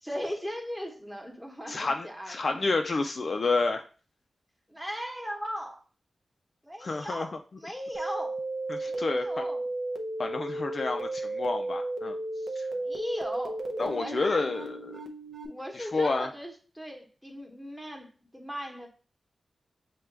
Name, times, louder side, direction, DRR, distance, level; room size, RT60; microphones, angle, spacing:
voice 1, 0.0-2.7 4.7-5.8 6.6-7.3 7.6-8.4 8.8-9.7 12.7-14.5 15.5-18.9, equal, ahead, 1 dB, 0.9 m, -38 dB
voice 2, 1.7-3.8 6.8-7.3 8.7-9.4 10.2-12.2 12.6-12.7 13.8-15.0 15.7-16.3, left 3 dB, 50° left, 5 dB, 0.3 m, -29 dB
sound 1, 7.9-15.5, right 2 dB, 75° right, 0.6 m, -34 dB
5.9 x 2.2 x 3.3 m, 0.38 s
wide cardioid pair, 120°, 0 cm